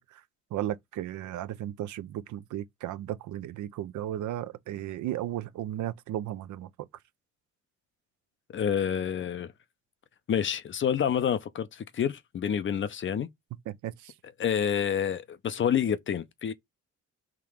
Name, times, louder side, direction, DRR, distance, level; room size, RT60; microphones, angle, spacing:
voice 1, 0.5-6.7 13.7-14.1, right 12 dB, 75° right, 0.6 m, -35 dB
voice 2, 8.5-9.5 10.3-13.3 14.4-16.5, left 8 dB, 40° left, 0.6 m, -28 dB
3.7 x 2.9 x 4.8 m
cardioid pair, 90°, 30 cm